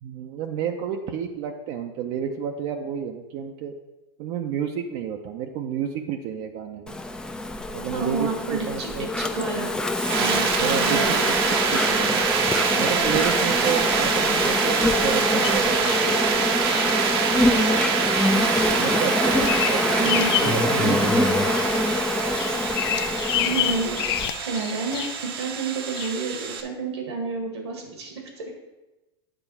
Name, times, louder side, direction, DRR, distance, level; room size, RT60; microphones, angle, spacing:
voice 1, 0.0-3.7 4.2-7.0 7.7-9.1 10.2-11.2 11.5-12.2 12.8-16.6 17.3-18.2 18.7-21.7, right 8 dB, 50° right, 3 dB, 0.6 m, -31 dB
Insect, 6.9-24.3, left 2 dB, 5° left, 0.5 m, -25 dB
voice 2, 7.9-8.9 9.2-9.7 10.1-10.3 10.6-11.2 20.0-20.3 23.3-23.9 24.4-28.5, right 4 dB, 85° right, 1 dB, 2.0 m, -30 dB
sound 1, 9.9-26.6, right 7 dB, 65° right, 1.0 m, -25 dB
Bird vocalization bird call bird song, 15.4-16.1 16.7-17.0 17.5-17.7 18.2-18.5 18.8-20.6 21.0-21.8 22.1-25.3 26.0-26.1, left 13 dB, 70° left, 0.4 m, -29 dB
9.0 x 3.8 x 5.7 m, 1.1 s
hypercardioid pair, 115°, 14 cm